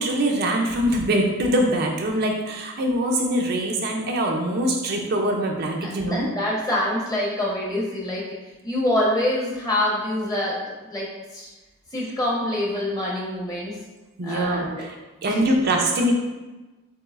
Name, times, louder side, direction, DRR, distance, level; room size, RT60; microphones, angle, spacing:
voice 1, 0.0-6.3 14.2-15.0 15.2-16.1, right 1 dB, 50° right, 2 dB, 0.5 m, -23 dB
voice 2, 5.8-8.3 8.6-11.5 11.9-13.8 14.2-14.9 15.2-15.4, left 1 dB, 20° left, -4 dB, 1.0 m, -26 dB
6.9 x 3.0 x 2.4 m, 1.1 s
head